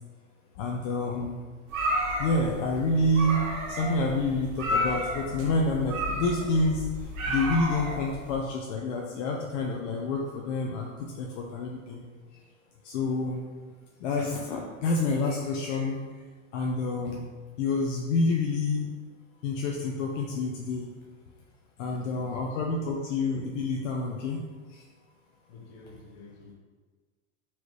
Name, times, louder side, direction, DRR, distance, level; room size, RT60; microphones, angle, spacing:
voice 1, 0.6-1.3 2.2-6.8 7.3-12.0 12.8-13.4 14.0-16.0 16.5-17.2 17.6-18.9 19.4-20.9 21.8-24.4 24.7-24.8, left 2 dB, 65° left, 0 dB, 0.6 m, -28 dB
sound 1, 1.7-8.3, equal, 80° right, 1.1 m, -32 dB
voice 2, 21.8-22.6 25.5-26.5, left 3 dB, 40° left, -1 dB, 1.0 m, -50 dB
4.1 x 3.2 x 3.1 m, 1.4 s
supercardioid pair, 130°, 41 cm